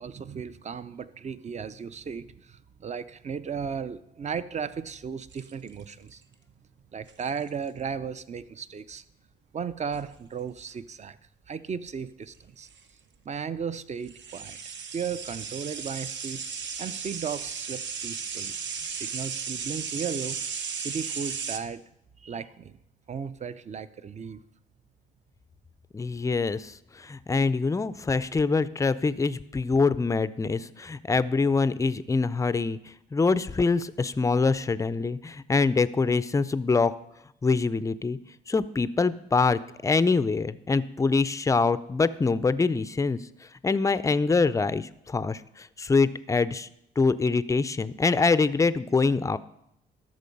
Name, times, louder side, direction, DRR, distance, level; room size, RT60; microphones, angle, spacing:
voice 1, 0.0-6.2 6.9-9.0 9.5-11.2 11.5-12.7 13.2-14.6 14.9-16.4 16.8-18.5 18.9-20.4 20.7-21.8 22.2-22.8 23.1-24.4, right 6 dB, 35° right, 14 dB, 0.6 m, -35 dB
sound 1, 5.3-6.1 7.1-7.5 9.9-10.1 12.3-12.4 12.6-12.8 14.0-21.6, right 6 dB, 65° right, 0.9 m, -35 dB
voice 2, 25.9-32.8 33.1-36.9 37.4-38.2 38.5-43.2 43.6-46.7 47.0-49.4, left 4 dB, 15° left, 15 dB, 0.4 m, -24 dB
13.0 x 6.3 x 5.3 m, 0.79 s
cardioid pair, 90°, 20 cm